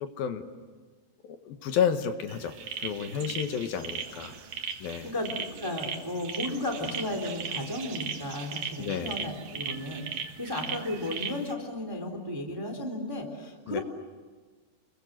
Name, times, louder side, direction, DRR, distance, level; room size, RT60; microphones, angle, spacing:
voice 1, 0.0-0.4 1.2-2.5 2.8-4.3 4.8-5.1 8.8-9.2 13.7-13.8, left 7 dB, 70° left, 7 dB, 3.0 m, -31 dB
sound 1, 2.3-11.5, right 6 dB, 55° right, 2.3 m, -38 dB
voice 2, 5.6-13.8, left 1 dB, 5° right, 4 dB, 2.5 m, -34 dB
29.5 x 22.5 x 8.0 m, 1.4 s
omnidirectional pair, 4.8 m